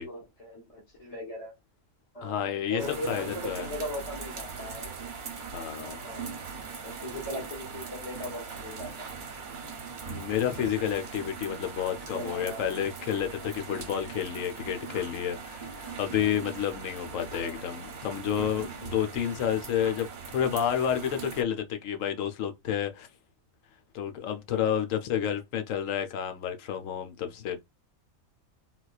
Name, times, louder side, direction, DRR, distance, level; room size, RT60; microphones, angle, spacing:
voice 1, 0.0-1.5 2.1-4.9 5.9-6.4 6.8-9.2 10.6-10.8 12.1-12.6 17.3-17.6, equal, 30° left, 1.1 m, -39 dB
voice 2, 2.2-3.7 5.5-6.0 10.1-23.1 23.9-27.6, left 9 dB, 75° left, 1.0 m, -30 dB
sound 1, 2.8-21.4, right 5 dB, 45° right, 0.8 m, -40 dB
4.0 x 2.2 x 2.3 m
omnidirectional pair, 1.5 m